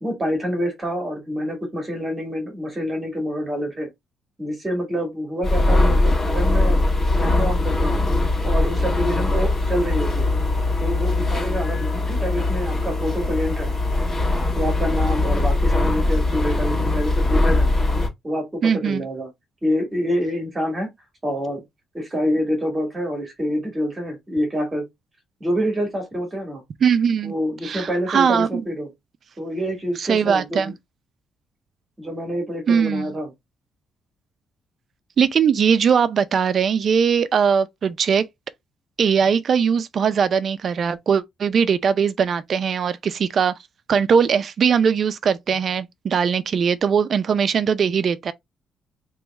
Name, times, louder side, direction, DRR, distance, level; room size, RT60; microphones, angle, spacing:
voice 1, 0.0-3.9 4.4-6.8 7.2-8.0 8.4-10.3 10.8-13.7 14.5-17.7 18.2-19.3 19.6-20.9 21.2-21.6 21.9-24.8 25.4-26.6 27.2-28.9 29.4-30.7 32.0-33.3, equal, 15° right, 1.8 m, -26 dB
sound 1, 5.4-18.1, left 2 dB, 25° left, 2.0 m, -21 dB
voice 2, 18.6-19.1 26.8-27.3 27.6-28.6 30.0-30.7 32.7-33.1 35.2-38.2 39.0-43.5 43.9-48.3, right 7 dB, 40° right, 0.4 m, -20 dB
3.4 x 3.0 x 3.4 m
cardioid pair, 160°, 0 cm